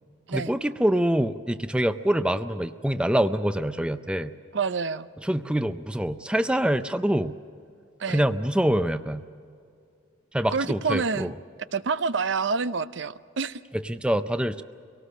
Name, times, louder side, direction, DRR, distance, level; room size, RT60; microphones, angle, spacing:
voice 1, 0.3-4.3 5.2-7.4 8.1-9.2 10.3-11.3 13.7-14.6, right 1 dB, 5° right, 10 dB, 0.4 m, -25 dB
voice 2, 4.5-5.1 8.0-8.2 10.5-11.3 11.7-13.6, right 5 dB, 65° right, 13 dB, 0.6 m, -27 dB
24.5 x 18.5 x 6.6 m, 2.4 s
head